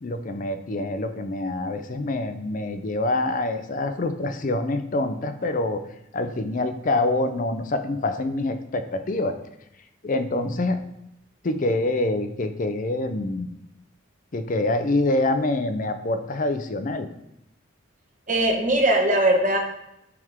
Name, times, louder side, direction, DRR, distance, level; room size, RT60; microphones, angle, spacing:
voice 1, 0.0-5.9 6.1-9.4 10.0-10.8 11.4-13.5 14.3-17.1, left 2 dB, 40° left, 9 dB, 0.5 m, -26 dB
voice 2, 18.3-19.6, right 1 dB, 40° right, 0 dB, 1.2 m, -20 dB
9.2 x 3.6 x 3.6 m, 0.83 s
head